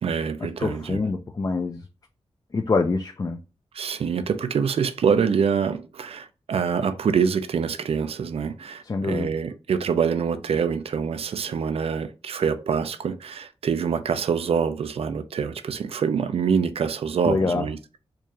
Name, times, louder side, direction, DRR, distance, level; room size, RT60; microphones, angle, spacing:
voice 1, 0.0-1.0 3.7-18.0, right 6 dB, 70° right, 0.4 m, -25 dB
voice 2, 0.6-1.8 2.5-3.4 8.8-9.3 17.2-17.7, left 3 dB, 35° left, 0.4 m, -25 dB
4.6 x 2.4 x 2.8 m
wide cardioid pair, 95°, 10 cm